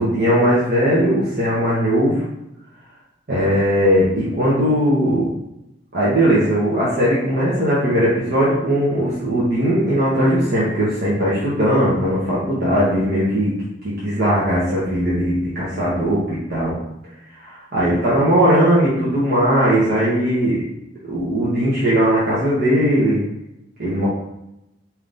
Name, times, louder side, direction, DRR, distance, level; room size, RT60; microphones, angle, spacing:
voice 1, 0.0-2.2 3.3-5.3 5.9-13.5 13.8-16.8 17.4-20.6 21.1-23.2 23.8-24.1, equal, 55° right, -8 dB, 1.0 m, -18 dB
3.4 x 3.0 x 3.9 m, 0.87 s
head